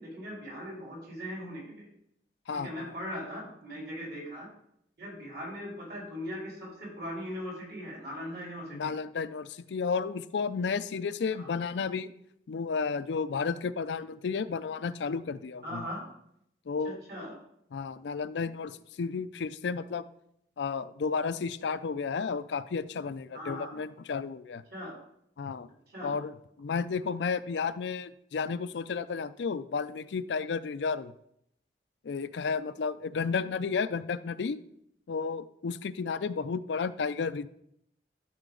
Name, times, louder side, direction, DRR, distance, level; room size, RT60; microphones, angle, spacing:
voice 1, 0.0-1.9 2.5-4.5 5.0-8.9 11.3-11.5 15.6-16.0 16.8-17.4 23.3-23.8 24.7-25.0 25.9-26.2, equal, 60° right, -3 dB, 3.8 m, -39 dB
voice 2, 2.5-2.9 8.7-12.1 12.5-15.8 16.7-17.0 17.7-20.0 20.6-24.6 25.4-25.7 26.0-26.3 26.6-31.1 32.0-34.6 35.1-37.5, left 5 dB, 80° left, 14 dB, 0.4 m, -32 dB
12.5 x 5.0 x 3.8 m, 0.74 s
head